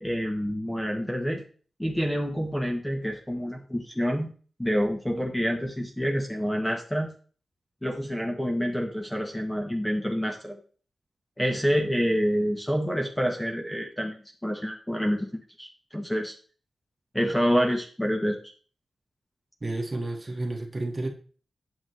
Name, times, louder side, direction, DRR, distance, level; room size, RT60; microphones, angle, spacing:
voice 1, 0.0-1.4 1.8-4.3 4.6-7.1 7.8-10.6 11.4-16.4 17.1-18.4, equal, 5° left, 2 dB, 1.1 m, -27 dB
voice 2, 19.6-21.1, right 2 dB, 30° right, 1 dB, 1.6 m, -31 dB
8.8 x 7.2 x 3.1 m, 0.41 s
wide cardioid pair, 115°, 0 cm